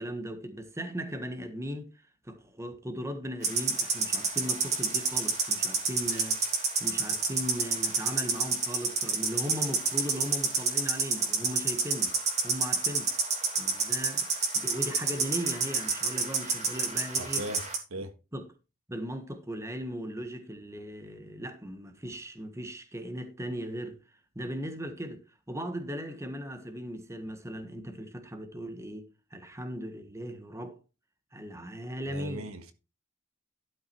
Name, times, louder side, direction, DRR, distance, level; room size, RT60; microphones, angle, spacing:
voice 1, 0.0-1.9 2.2-12.1 12.4-13.1 13.6-14.3 14.5-17.4 18.3-18.5 18.9-24.0 24.3-30.8 31.3-32.4, equal, 15° right, 1.4 m, -38 dB
sound 1, 3.4-17.8, right 4 dB, 30° right, 2.6 m, -29 dB
voice 2, 17.2-18.1 32.1-32.7, right 1 dB, 80° right, 1.6 m, -39 dB
12.0 x 5.8 x 4.6 m
head